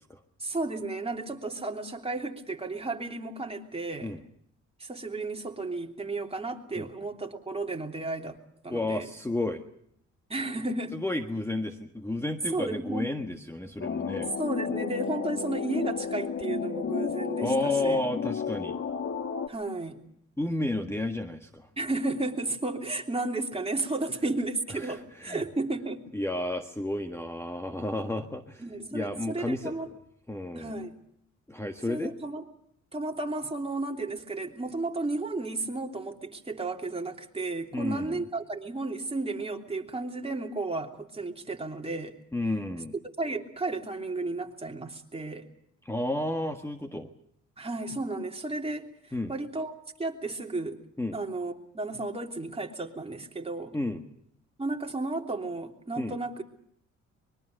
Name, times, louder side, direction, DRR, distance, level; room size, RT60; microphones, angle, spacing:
voice 1, 0.4-4.2 4.8-8.4 8.6-9.1 10.3-11.0 12.5-13.1 14.4-18.0 19.5-20.0 21.8-26.0 28.6-29.9 30.5-31.0 31.9-32.4 32.9-42.2 43.2-45.5 47.6-49.7 50.0-50.8 51.1-53.7 54.6-56.4, right 2 dB, 20° right, 2 dB, 3.1 m, -33 dB
voice 2, 8.7-9.6 10.9-14.3 17.4-18.8 20.4-21.7 24.7-25.4 26.1-28.6 28.9-29.7 30.3-30.9 31.5-32.1 37.7-38.2 42.3-42.9 45.8-47.1 49.1-49.3 51.0-51.2 53.7-54.0 56.0-56.2, left 1 dB, 10° left, 5 dB, 1.6 m, -32 dB
sound 1, 13.8-19.5, left 6 dB, 50° left, 1.8 m, -32 dB
24.5 x 22.5 x 6.7 m, 0.70 s
cardioid pair, 90°, 30 cm